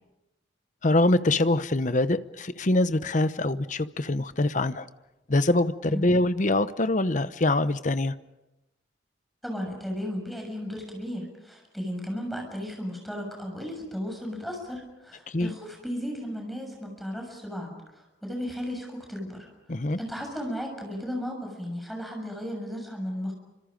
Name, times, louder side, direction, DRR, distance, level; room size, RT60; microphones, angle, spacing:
voice 1, 0.8-4.9 5.3-8.1 15.3-15.6 19.7-20.0, left 2 dB, 40° left, 13 dB, 0.9 m, -24 dB
voice 2, 9.4-19.5 20.0-23.3, equal, ahead, 1 dB, 6.9 m, -35 dB
29.0 x 26.0 x 5.3 m, 0.97 s
head